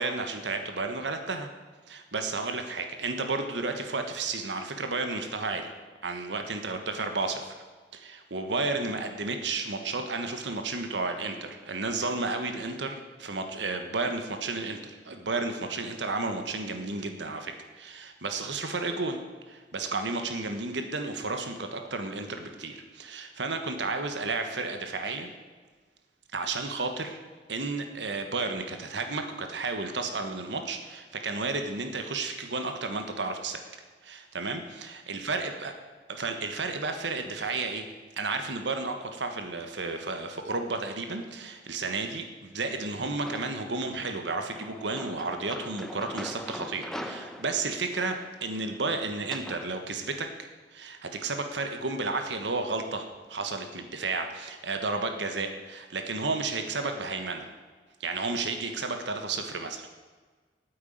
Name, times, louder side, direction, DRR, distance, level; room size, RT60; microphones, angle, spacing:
voice 1, 0.0-1.5 1.9-5.7 6.0-7.5 7.9-25.3 26.3-27.2 27.5-33.6 34.0-35.7 36.1-37.9 38.2-50.3 50.7-57.5 58.0-59.9, right 3 dB, 90° right, 6 dB, 1.4 m, -32 dB
sound 1, 43.2-43.8 44.5-49.6, equal, 5° left, 0.9 m, -42 dB
9.4 x 9.1 x 9.1 m, 1.4 s
head